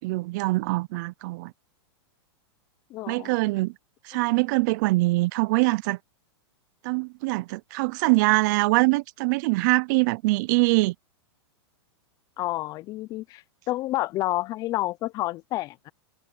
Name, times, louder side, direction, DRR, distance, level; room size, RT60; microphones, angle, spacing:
voice 1, 0.0-1.5 3.1-3.7 4.0-6.0 6.8-10.9, right 24 dB, 40° right, 0.5 m, -23 dB
voice 2, 2.9-3.4 12.4-15.9, left 17 dB, 25° left, 0.5 m, -29 dB
supercardioid pair, 155°, 14 cm